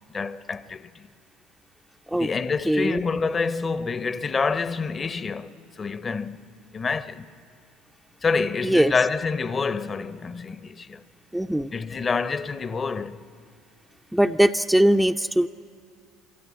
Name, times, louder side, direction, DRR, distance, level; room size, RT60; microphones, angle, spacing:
voice 1, 0.1-1.1 2.1-6.5 6.7-7.3 8.2-11.0 11.7-13.3, left 4 dB, 30° left, 0.7 m, -27 dB
voice 2, 2.7-3.0 8.6-8.9 11.3-11.7 14.1-15.5, right 1 dB, 5° right, 0.4 m, -20 dB
24.5 x 13.5 x 9.8 m
hypercardioid pair, 65°, 0 cm